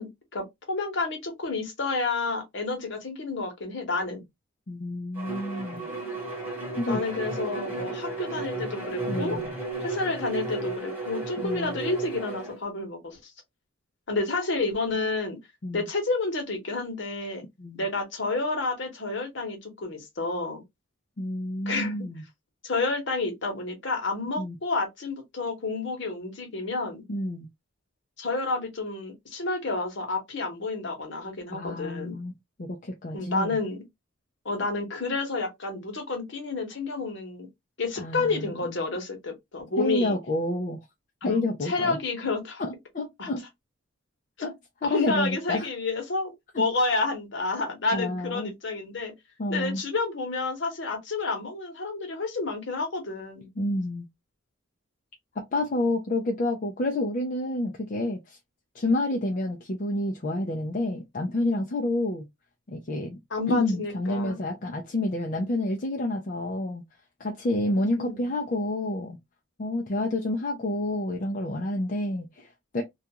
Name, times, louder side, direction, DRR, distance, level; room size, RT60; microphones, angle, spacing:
voice 1, 0.0-4.2 6.9-9.4 9.8-13.3 14.1-15.4 15.7-17.4 17.7-20.6 21.7-22.1 22.6-27.0 28.2-32.2 33.1-33.8 34.4-37.5 37.8-40.2 41.2-42.6 43.2-43.3 44.8-49.1 49.5-53.5 63.3-64.4 68.0-68.3, left 3 dB, 60° left, 1.0 m, -30 dB
voice 2, 4.7-5.9 6.8-7.0 9.1-9.5 11.4-11.8 15.6-15.9 17.6-17.9 21.2-22.2 24.4-24.6 27.1-27.5 31.5-32.3 32.6-33.6 38.0-38.8 39.8-40.8 41.2-42.0 42.6-43.4 44.4-44.5 44.8-45.7 46.5-46.6 47.9-48.5 49.4-49.8 53.6-54.1 55.4-58.4 58.7-62.3 62.7-63.2 63.5-66.8 67.2-69.2 69.6-72.8, left 1 dB, 40° left, 0.4 m, -29 dB
Bowed string instrument, 5.2-12.6, right 3 dB, 10° right, 1.2 m, -33 dB
2.4 x 2.3 x 2.8 m
head